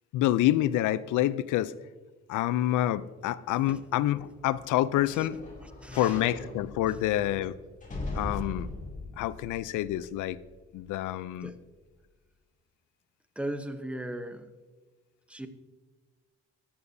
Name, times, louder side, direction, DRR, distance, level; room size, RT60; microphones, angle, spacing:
voice 1, 0.1-1.7 2.3-5.4 5.9-7.5 8.1-8.7 9.2-10.4 10.7-11.5, left 14 dB, 85° left, 17 dB, 0.5 m, -27 dB
sound 1, 4.3-10.5 11.0-11.1, left 2 dB, 25° left, 2.7 m, -40 dB
voice 2, 5.8-6.2 11.4-11.6 13.4-14.5 15.3-15.5, right 1 dB, 5° right, 9 dB, 0.8 m, -37 dB
14.0 x 8.7 x 2.7 m, 1.3 s
cardioid pair, 90°, 30 cm